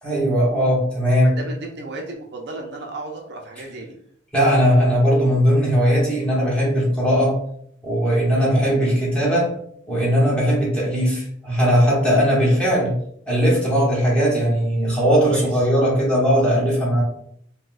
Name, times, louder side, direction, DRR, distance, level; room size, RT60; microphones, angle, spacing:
voice 1, 0.0-1.3 4.3-7.4 7.8-9.5 9.9-12.9 13.3-17.0, equal, 5° left, -6 dB, 1.0 m, -18 dB
voice 2, 1.2-3.9 8.3-8.5 10.4-10.6 12.5-12.7 15.3-15.6, right 2 dB, 60° right, 1 dB, 0.5 m, -34 dB
4.0 x 2.2 x 2.5 m, 0.67 s
head